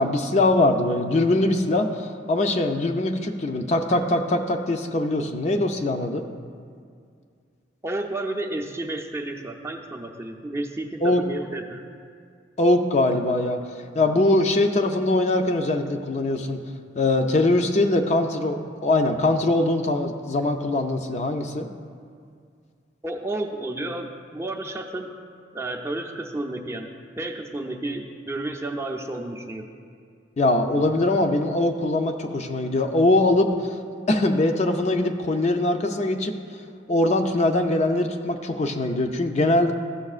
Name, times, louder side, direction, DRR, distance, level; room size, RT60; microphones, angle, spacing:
voice 1, 0.0-6.2 11.0-11.2 12.6-13.6 13.9-16.6 17.0-21.7 30.4-33.8 34.1-36.3 36.9-39.7, left 2 dB, 40° left, 5 dB, 0.5 m, -22 dB
voice 2, 7.8-11.8 23.0-25.1 25.5-26.9 27.1-29.7, right 2 dB, 15° right, 2 dB, 0.5 m, -31 dB
14.0 x 6.8 x 2.4 m, 2.2 s
head